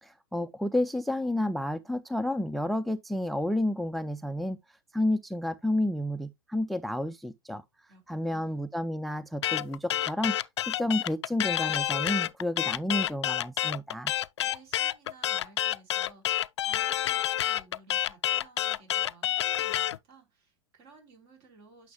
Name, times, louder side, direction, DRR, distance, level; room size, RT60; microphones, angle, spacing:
voice 1, 0.0-4.6 4.9-7.6 8.1-10.3 10.7-14.1, left 1 dB, ahead, 0.3 m, -30 dB
voice 2, 7.9-8.6 14.4-21.9, right 4 dB, 55° right, 3.6 m, -56 dB
sound 1, 9.4-20.0, left 12 dB, 75° left, 0.4 m, -28 dB
9.3 x 5.7 x 2.2 m
hypercardioid pair, 100°, 14 cm